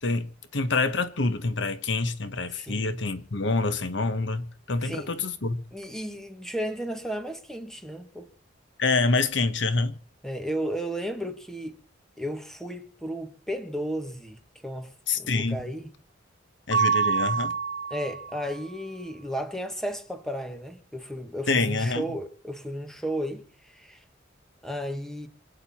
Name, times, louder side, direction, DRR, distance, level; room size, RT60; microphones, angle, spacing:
voice 1, 0.0-5.6 8.8-9.9 15.1-15.7 16.7-17.6 21.5-22.0, left 3 dB, 65° left, 1.1 m, -26 dB
voice 2, 2.5-3.0 4.8-5.1 5.7-8.3 10.2-11.8 12.2-15.9 17.9-24.0 24.6-25.3, equal, ahead, 1.7 m, -34 dB
Mallet percussion, 16.7-18.5, right 6 dB, 25° left, 3.3 m, -26 dB
27.0 x 9.2 x 4.3 m
head